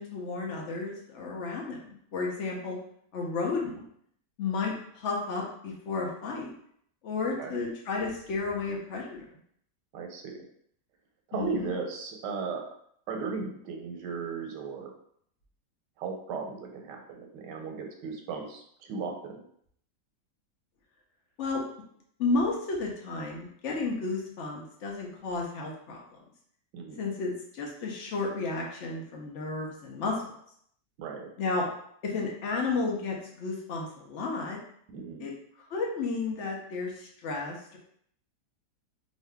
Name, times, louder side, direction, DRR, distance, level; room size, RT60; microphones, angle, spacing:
voice 1, 0.0-2.8 3.1-3.8 4.4-6.5 7.0-9.2 11.3-11.7 21.4-21.6 22.2-26.0 27.0-30.2 31.4-31.7 32.0-34.6 35.2-35.3 35.6-37.8, left 3 dB, 60° left, -1 dB, 0.8 m, -32 dB
voice 2, 9.9-10.4 11.3-12.7 13.1-14.9 16.0-19.4 26.7-27.0 31.0-31.3 34.9-35.3, right 5 dB, 90° right, 2 dB, 1.2 m, -36 dB
2.7 x 2.6 x 3.3 m, 0.67 s
omnidirectional pair, 1.8 m